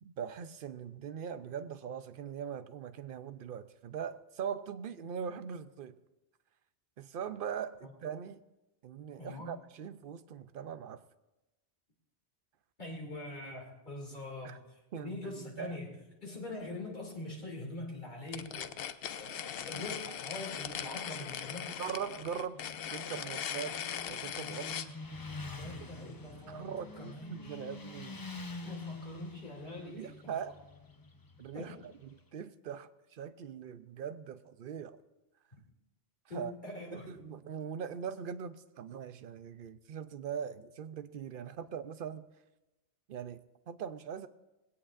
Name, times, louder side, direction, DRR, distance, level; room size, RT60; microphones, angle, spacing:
voice 1, 0.0-6.0 7.0-8.4 8.8-11.0 14.4-14.6 14.9-15.8 21.8-22.6 22.9-23.8 24.1-24.9 26.5-28.3 28.7-28.8 29.8-30.6 31.4-35.0 36.3-36.5 36.9-42.3 43.1-44.3, right 7 dB, 60° right, 0.7 m, -41 dB
voice 2, 9.2-9.6 12.8-18.8 19.1-21.7 25.5-27.6 28.6-30.4 31.5-31.9 36.3-37.2, left 2 dB, 45° left, 2.9 m, -44 dB
sound 1, 18.3-24.9, left 9 dB, 65° left, 0.8 m, -40 dB
Motorcycle, 22.4-32.2, left 3 dB, 25° left, 0.6 m, -47 dB
20.0 x 17.0 x 2.5 m
omnidirectional pair, 1.1 m